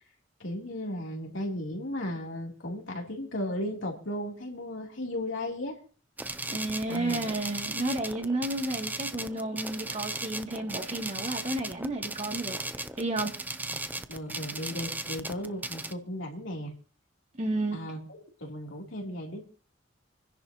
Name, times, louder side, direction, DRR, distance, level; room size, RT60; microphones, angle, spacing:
voice 1, 0.4-5.8 6.9-7.3 13.7-16.7 17.7-18.0 18.4-19.4, left 1 dB, 80° left, 3.2 m, -35 dB
sound 1, 6.2-15.9, right 2 dB, 10° right, 0.7 m, -37 dB
voice 2, 6.5-13.3 17.4-17.8, right 2 dB, 35° right, 2.5 m, -32 dB
27.5 x 10.5 x 2.9 m
head